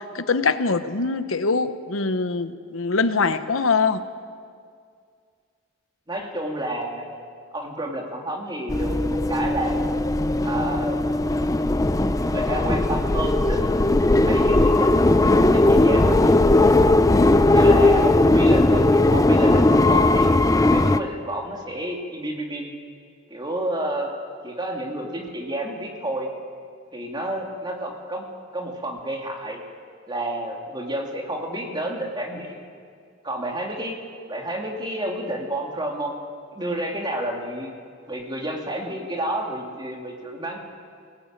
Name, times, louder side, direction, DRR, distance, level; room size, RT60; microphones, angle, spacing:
voice 1, 0.0-4.0, left 4 dB, 85° left, 11 dB, 1.0 m, -23 dB
voice 2, 6.1-7.2 7.5-9.8 10.4-11.0 11.3-11.8 12.3-16.4 17.5-18.9 19.1-20.4 20.7-22.7 23.3-24.1 24.4-26.3 26.9-28.2 28.5-29.6 30.1-32.6 33.2-34.0 34.3-36.2 36.5-37.7 38.1-40.6, right 1 dB, 20° right, 1 dB, 2.8 m, -30 dB
sound 1, 8.7-21.0, left 2 dB, 15° left, 0.6 m, -18 dB
22.0 x 18.5 x 9.0 m, 2.2 s
head